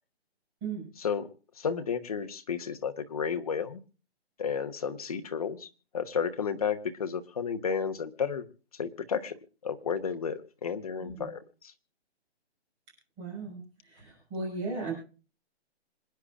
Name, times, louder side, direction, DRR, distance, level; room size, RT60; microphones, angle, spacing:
voice 1, 1.6-3.8 4.4-5.7 5.9-8.4 8.8-9.4 9.6-11.4, left 6 dB, 35° left, 7 dB, 1.1 m, -32 dB
voice 2, 11.0-11.3 13.2-14.9, right 3 dB, 15° right, -3 dB, 6.0 m, -36 dB
26.5 x 9.9 x 2.4 m, 0.36 s
hypercardioid pair, 175°, 33 cm